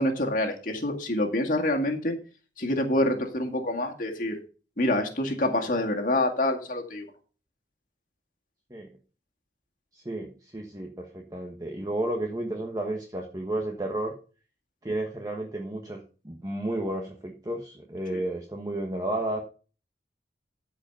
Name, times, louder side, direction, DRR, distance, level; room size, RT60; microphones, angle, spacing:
voice 1, 0.0-2.2 2.6-4.4 4.8-7.0 18.1-18.2, left 1 dB, 45° left, 2 dB, 2.1 m, -26 dB
voice 2, 9.9-14.1 14.8-16.0 16.2-19.4, right 1 dB, 20° right, 2 dB, 1.3 m, -32 dB
14.0 x 5.1 x 5.6 m, 0.37 s
head